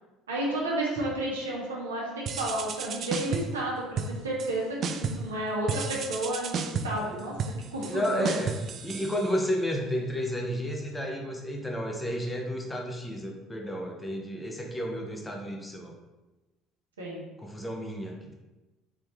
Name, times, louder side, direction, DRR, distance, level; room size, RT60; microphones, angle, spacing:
voice 1, 0.3-7.4 7.7-8.3 17.0-17.2, right 1 dB, 80° right, -4 dB, 1.1 m, -31 dB
sound 1, 2.3-3.6 4.0-4.5 4.8-5.3 5.7-9.7, right 5 dB, 45° right, 0.4 m, -33 dB
voice 2, 7.8-15.9 17.4-18.3, equal, 15° left, 1 dB, 0.9 m, -32 dB
4.2 x 3.6 x 3.3 m, 1.1 s
figure-of-eight pair, 60°, 0 cm